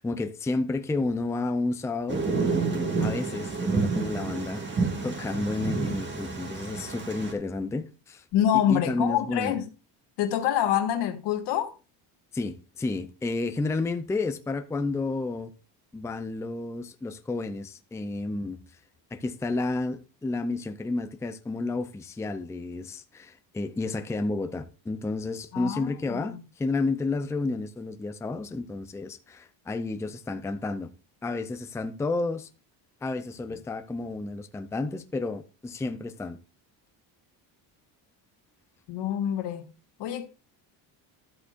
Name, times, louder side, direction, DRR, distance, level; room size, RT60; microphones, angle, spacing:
voice 1, 0.0-2.3 3.0-4.6 5.0-8.2 8.5-9.6 12.3-15.5 15.9-18.6 19.1-30.9 31.2-32.5 33.0-36.4, left 3 dB, 5° left, 0.5 m, -31 dB
Thunder, 2.1-7.3, right 4 dB, 25° right, 2.2 m, -29 dB
voice 2, 8.3-9.7 10.2-11.7 25.5-26.4 38.9-39.7 40.0-40.2, left 10 dB, 75° left, 1.7 m, -26 dB
13.0 x 8.2 x 2.5 m
cardioid pair, 155°, 42 cm